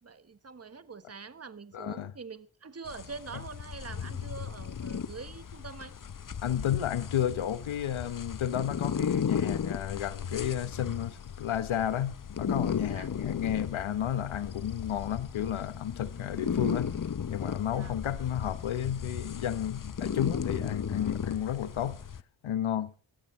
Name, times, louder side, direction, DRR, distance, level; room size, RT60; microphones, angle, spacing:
voice 1, 0.0-5.9 12.9-13.1 17.7-17.9, right 4 dB, 30° right, 1.3 m, -44 dB
voice 2, 1.7-2.1 6.4-16.9 17.3-22.0 22.4-22.9, left 10 dB, 85° left, 1.1 m, -32 dB
sound 1, 2.9-22.2, left 7 dB, 45° left, 0.8 m, -35 dB
19.5 x 13.5 x 3.2 m
cardioid pair, 50°, 47 cm